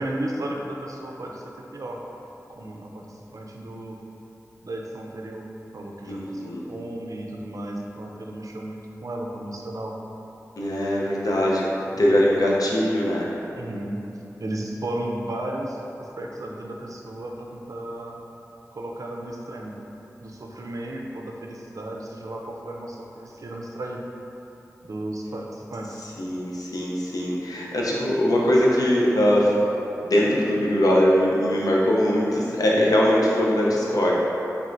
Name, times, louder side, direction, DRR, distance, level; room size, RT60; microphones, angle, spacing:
voice 1, 0.0-1.4 1.7-2.0 2.6-4.0 4.6-5.5 5.7-9.9 11.0-11.1 11.8-12.3 13.5-14.0 14.4-18.2 18.7-19.8 20.2-24.0 24.8-26.0 32.6-32.7, right 1 dB, 65° right, 0 dB, 0.4 m, -34 dB
voice 2, 6.1-6.6 10.6-13.3 26.0-29.8 30.0-34.1, equal, 80° left, -4 dB, 0.6 m, -21 dB
4.3 x 3.4 x 2.5 m, 3.0 s
wide cardioid pair, 60°, 6 cm